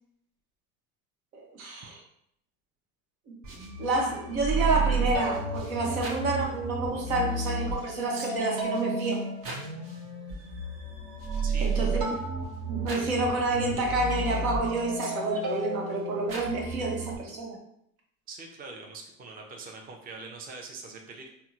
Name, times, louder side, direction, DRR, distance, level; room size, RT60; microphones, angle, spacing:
voice 1, 1.3-2.0 3.8-9.2 11.6-12.2 12.7-17.6, right 2 dB, 80° right, -1 dB, 1.0 m, -29 dB
sound 1, 3.4-17.1, right 3 dB, 50° right, 0.9 m, -32 dB
voice 2, 11.4-11.7 18.3-21.3, right 3 dB, 20° right, 2 dB, 0.5 m, -43 dB
3.5 x 2.2 x 2.9 m, 0.73 s
hypercardioid pair, 80°, 42 cm